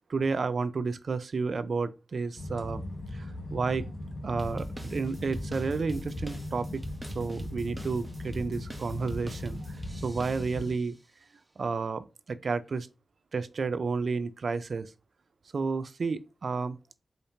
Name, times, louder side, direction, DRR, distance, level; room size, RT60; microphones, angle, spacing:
voice 1, 0.1-2.8 3.1-3.9 4.2-6.8 7.1-9.6 10.0-10.9 11.6-12.9 13.3-14.9 15.5-16.8, right 4 dB, 70° right, 0.4 m, -31 dB
sound 1, 2.4-10.7, left 1 dB, 60° left, 0.9 m, -39 dB
sound 2, 4.4-10.9, right 1 dB, 20° right, 0.9 m, -43 dB
5.0 x 2.8 x 2.8 m
cardioid pair, 65°, 0 cm